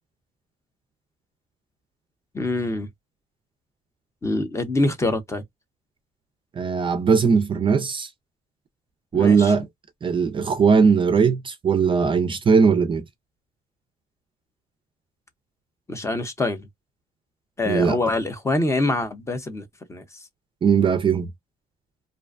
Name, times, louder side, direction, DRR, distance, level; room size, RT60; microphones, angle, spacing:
voice 1, 2.3-2.9 4.2-5.4 9.1-9.5 15.9-16.7 17.6-20.2, left 2 dB, 15° left, 0.6 m, -25 dB
voice 2, 6.6-8.1 9.1-9.7 10.0-13.1 17.7-18.0 20.6-21.3, right 5 dB, 30° right, 0.4 m, -19 dB
2.5 x 2.1 x 2.4 m
cardioid pair, 110°, 17 cm